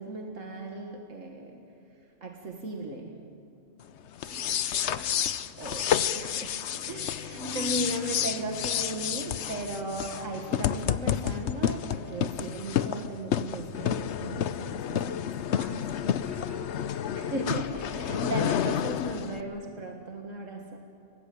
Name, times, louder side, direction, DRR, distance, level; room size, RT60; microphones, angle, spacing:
voice 1, 0.0-3.3 5.6-15.4 17.1-20.8, right 2 dB, 85° right, 3 dB, 2.1 m, -36 dB
sound 1, 4.2-19.4, left 9 dB, 65° left, 1.0 m, -30 dB
voice 2, 4.2-5.3 5.6-6.2 6.6-6.8 7.3-7.8 15.5-17.0, right 1 dB, 40° right, 0 dB, 5.1 m, -46 dB
24.0 x 19.5 x 8.6 m, 2.7 s
omnidirectional pair, 1.3 m